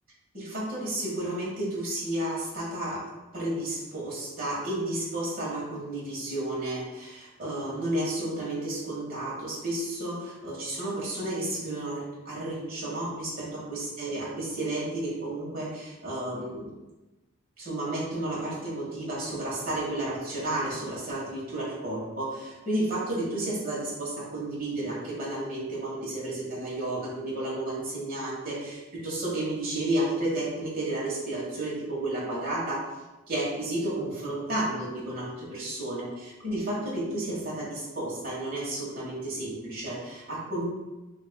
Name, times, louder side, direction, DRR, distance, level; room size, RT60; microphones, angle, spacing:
voice 1, 0.3-3.0 3.3-16.7 17.6-32.8 33.3-40.6, right 1 dB, 45° right, -5 dB, 1.4 m, -32 dB
6.3 x 2.5 x 2.3 m, 1.1 s
head